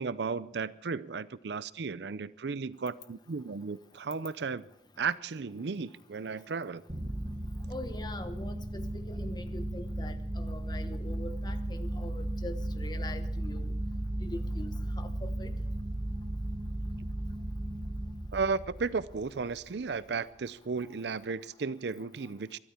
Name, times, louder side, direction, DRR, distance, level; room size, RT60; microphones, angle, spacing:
voice 1, 0.0-4.6 5.0-6.8 18.3-22.6, right 4 dB, 70° right, 0.5 m, -34 dB
sound 1, 6.9-19.8, right 1 dB, 30° right, 1.2 m, -35 dB
voice 2, 7.7-13.7 14.2-15.5, left 2 dB, 25° left, 1.1 m, -43 dB
23.5 x 12.5 x 4.4 m
head